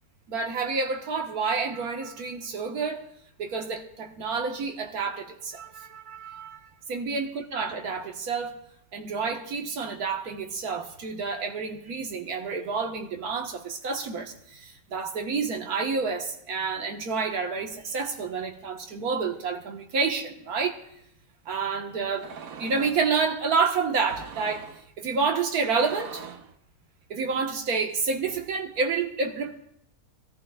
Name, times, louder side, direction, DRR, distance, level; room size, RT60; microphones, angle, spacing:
voice 1, 0.3-3.1 3.4-8.5 8.9-20.8 21.5-22.3 22.6-24.7 25.0-26.3 27.1-29.6, right 5 dB, 90° right, 3 dB, 1.7 m, -29 dB
sound 1, 22.1-23.1 24.0-24.8 25.5-26.5, right 7 dB, 70° right, 1.2 m, -42 dB
23.0 x 14.0 x 2.3 m, 0.76 s
omnidirectional pair, 1.5 m